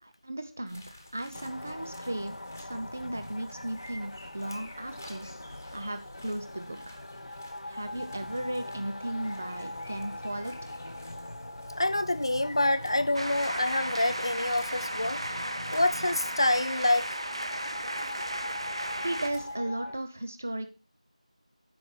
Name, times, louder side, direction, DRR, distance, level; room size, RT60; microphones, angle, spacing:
voice 1, 0.0-0.8 1.1-7.0 7.7-10.7 19.0-20.7, right 1 dB, 15° right, 0.6 m, -36 dB
sound 1, 0.7-19.6, left 1 dB, 20° left, 1.3 m, -49 dB
sound 2, 1.3-20.0, left 1 dB, 80° left, 0.8 m, -42 dB
voice 2, 11.8-15.2 15.7-17.1, left 1 dB, 40° left, 0.6 m, -27 dB
sound 3, 13.1-19.3, right 1 dB, 45° right, 0.9 m, -35 dB
12.0 x 5.5 x 4.6 m
figure-of-eight pair, 180°, 4 cm